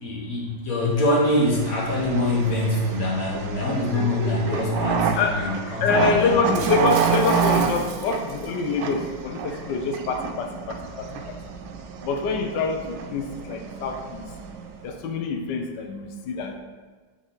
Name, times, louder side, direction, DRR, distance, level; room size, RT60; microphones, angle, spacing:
voice 1, 0.0-6.6, left 1 dB, 50° left, -3 dB, 1.5 m, -24 dB
sound 1, 1.1-14.9, right 6 dB, 85° right, 1.3 m, -29 dB
sound 2, 3.6-9.8 10.7-11.9, left 1 dB, 10° left, 1.4 m, -39 dB
voice 2, 5.2-5.5 5.8-11.1 12.0-14.2 14.8-16.6, left 4 dB, 75° left, 5 dB, 1.3 m, -26 dB
Shatter, 6.5-8.9, right 7 dB, 70° right, 0.9 m, -38 dB
6.2 x 5.0 x 3.9 m, 1.4 s
omnidirectional pair, 2.0 m